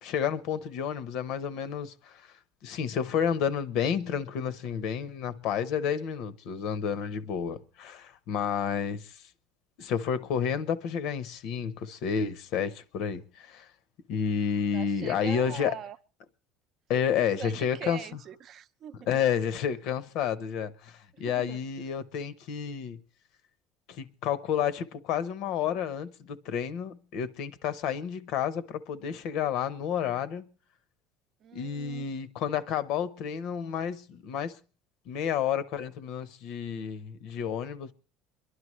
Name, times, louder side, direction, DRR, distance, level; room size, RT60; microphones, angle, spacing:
voice 1, 0.0-2.3 2.6-9.2 9.8-13.7 14.1-15.7 16.9-18.0 19.1-23.0 23.9-30.4 31.5-34.6 35.1-37.9, left 8 dB, 60° left, 0.8 m, -30 dB
voice 2, 14.7-16.0 17.2-19.2 21.1-21.6 31.4-32.1, right 8 dB, 35° right, 0.6 m, -43 dB
29.5 x 11.0 x 3.1 m
cardioid pair, 160°, 0 cm